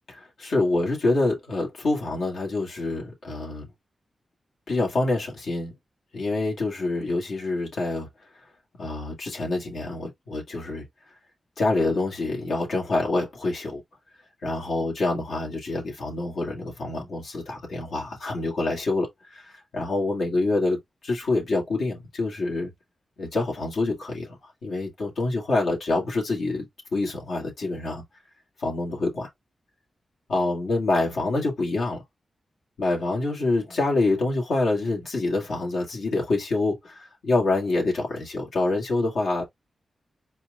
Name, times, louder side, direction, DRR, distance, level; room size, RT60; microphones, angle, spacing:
voice 1, 0.1-3.7 4.7-5.7 6.1-8.1 8.8-10.8 11.6-13.8 14.4-22.7 23.2-26.7 26.9-28.0 28.6-29.3 30.3-32.0 32.8-39.4, left 2 dB, 90° left, 2.3 m, -26 dB
4.6 x 4.4 x 2.5 m
wide cardioid pair, 120°, 0 cm